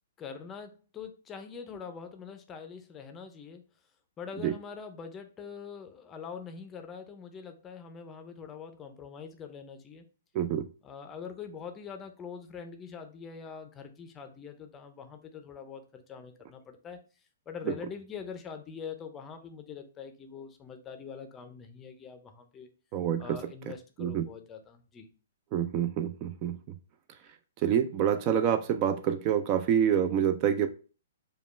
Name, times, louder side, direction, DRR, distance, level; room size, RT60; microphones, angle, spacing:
voice 1, 0.2-3.6 4.2-10.0 10.8-17.0 17.5-22.7 23.2-25.1, left 6 dB, 20° left, 7 dB, 0.5 m, -44 dB
voice 2, 10.3-10.7 17.7-17.8 22.9-23.4 24.0-24.3 25.5-26.6 27.6-30.7, right 9 dB, 35° right, 9 dB, 0.3 m, -27 dB
5.0 x 2.3 x 3.2 m, 0.36 s
hypercardioid pair, 140°, 0 cm